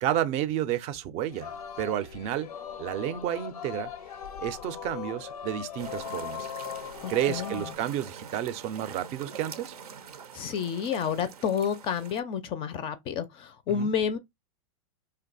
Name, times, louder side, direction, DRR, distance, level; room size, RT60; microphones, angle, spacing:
voice 1, 0.0-1.5 1.8-2.5 2.8-3.9 4.4-6.5 7.1-9.8 13.7-13.9, right 11 dB, 35° right, 0.4 m, -31 dB
Singing, 1.3-7.7, left 9 dB, 85° left, 0.5 m, -39 dB
sound 1, 5.8-12.2, right 7 dB, 90° right, 0.5 m, -45 dB
voice 2, 7.0-7.7 10.3-14.2, left 7 dB, 30° left, 0.4 m, -30 dB
2.6 x 2.2 x 3.8 m
hypercardioid pair, 115°, 19 cm